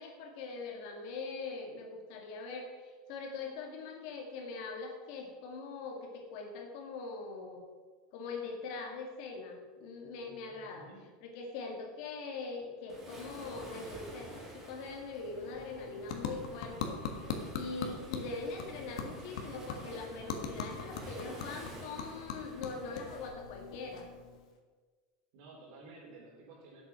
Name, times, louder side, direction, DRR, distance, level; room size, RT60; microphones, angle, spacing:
voice 1, 0.0-7.6 8.1-10.9 11.2-17.2 17.5-24.1, left 4 dB, 50° left, 2 dB, 1.9 m, -42 dB
voice 2, 10.5-11.0 22.5-22.7 25.3-26.8, right 3 dB, 55° right, -2 dB, 3.8 m, -53 dB
Waves surf, 12.9-23.3, right 1 dB, 15° right, 2.0 m, -49 dB
sound 1, 15.1-24.6, left 5 dB, 80° left, 1.5 m, -42 dB
9.8 x 7.5 x 5.7 m, 1.4 s
supercardioid pair, 170°, 4 cm